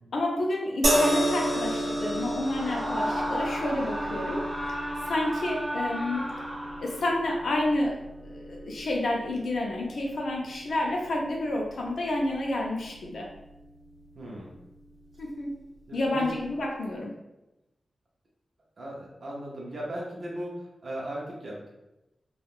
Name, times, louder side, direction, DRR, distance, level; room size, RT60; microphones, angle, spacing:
voice 1, 0.1-4.4 4.7-4.8 5.1-6.2 6.8-8.0 8.2-13.3 15.2-15.5 15.9-17.1, left 1 dB, 70° left, -1 dB, 0.4 m, -29 dB
sound 1, 0.8-14.2 15.1-15.3, equal, 70° right, 1.1 m, -33 dB
Screaming, 2.4-7.2, equal, 5° right, 0.7 m, -34 dB
voice 2, 14.2-14.6 15.9-16.3 18.8-21.7, right 1 dB, 50° right, -4 dB, 0.5 m, -37 dB
3.4 x 2.2 x 2.4 m, 0.96 s
wide cardioid pair, 165°, 0 cm